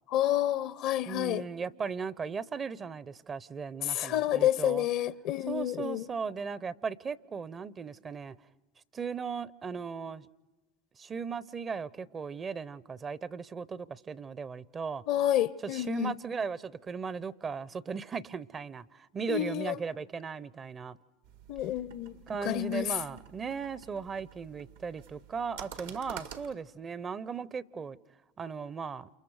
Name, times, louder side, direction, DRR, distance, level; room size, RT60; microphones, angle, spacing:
voice 1, 0.1-1.4 3.8-6.1 15.1-16.2 19.3-19.7 21.5-22.9, left 12 dB, 60° left, 0.8 m, -29 dB
voice 2, 1.1-4.9 5.5-8.4 8.9-10.3 11.0-15.0 15.6-21.0 22.3-28.0 28.4-29.1, right 5 dB, 30° right, 0.7 m, -37 dB
sound 1, 21.2-26.5, right 8 dB, 80° right, 1.8 m, -49 dB
28.5 x 28.0 x 4.9 m
hypercardioid pair, 75°, 0 cm